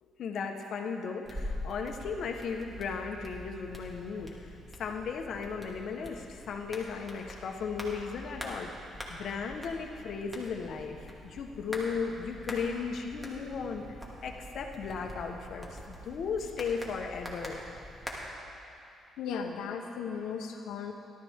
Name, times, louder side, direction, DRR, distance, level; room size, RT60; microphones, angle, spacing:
voice 1, 0.0-8.7 9.1-13.8 14.2-17.6, left 5 dB, 65° left, 3 dB, 1.3 m, -36 dB
sound 1, 1.2-18.1, equal, 5° right, 2.3 m, -44 dB
voice 2, 19.2-20.9, left 6 dB, 85° left, 4 dB, 1.1 m, -36 dB
18.0 x 12.5 x 3.7 m, 2.7 s
cardioid pair, 90°, 0 cm